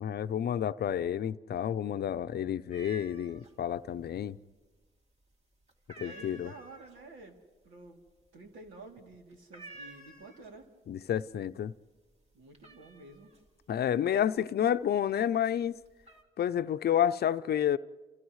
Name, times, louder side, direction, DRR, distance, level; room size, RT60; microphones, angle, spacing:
voice 1, 0.0-4.4 6.0-6.5 10.9-11.7 13.7-15.8 16.4-17.8, left 10 dB, 55° left, 0.6 m, -30 dB
sound 1, 2.7-3.5 3.8-4.6 5.0-5.3 5.7-10.8 11.1-11.7 12.0-15.1 15.6-16.2, right 2 dB, 35° right, 2.7 m, -51 dB
voice 2, 6.0-7.4 7.6-8.0 8.3-10.7 12.3-13.3, right 3 dB, 90° right, 3.0 m, -50 dB
29.0 x 29.0 x 3.2 m
cardioid pair, 90°, 20 cm